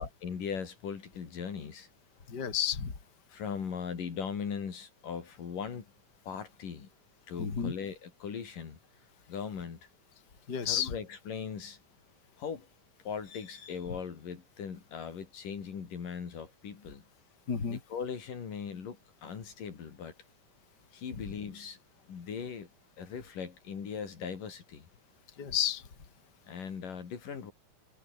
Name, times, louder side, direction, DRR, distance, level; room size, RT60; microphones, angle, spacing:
voice 1, 0.0-1.9 3.3-5.9 6.2-6.9 7.3-8.8 9.3-9.8 10.6-11.8 12.4-12.7 13.0-17.0 17.7-20.1 20.9-21.8 22.1-22.7 23.0-24.9 26.5-27.5, left 6 dB, 70° left, 5.0 m, -39 dB
voice 2, 2.3-2.9 7.4-7.7 10.5-10.9 17.5-17.8 25.4-25.8, left 8 dB, 30° left, 3.3 m, -31 dB
omnidirectional pair, 3.9 m